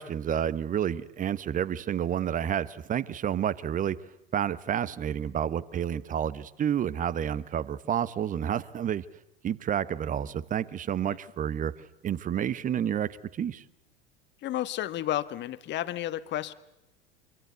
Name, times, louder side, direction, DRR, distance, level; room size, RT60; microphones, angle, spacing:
voice 1, 0.0-4.0 4.3-9.1 9.4-11.7 12.0-13.1 13.4-13.6, right 9 dB, 25° right, 19 dB, 1.0 m, -29 dB
voice 2, 14.4-16.5, left 13 dB, 35° left, 15 dB, 1.3 m, -32 dB
25.5 x 23.0 x 8.2 m, 0.89 s
figure-of-eight pair, 80°, 30 cm